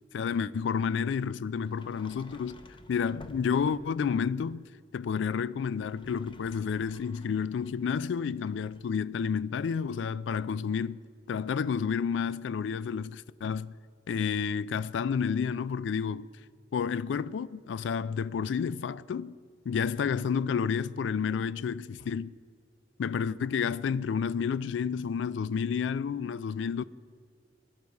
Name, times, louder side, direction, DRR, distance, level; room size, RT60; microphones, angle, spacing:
voice 1, 0.1-2.6 2.9-4.7 4.9-11.0 11.3-13.7 14.1-16.3 16.7-19.4 19.7-22.3 23.0-26.8, left 6 dB, 65° left, 0.3 m, -30 dB
Sliding door, 1.6-4.1 5.7-8.9, left 1 dB, 25° left, 0.7 m, -53 dB
17.0 x 11.0 x 4.7 m
head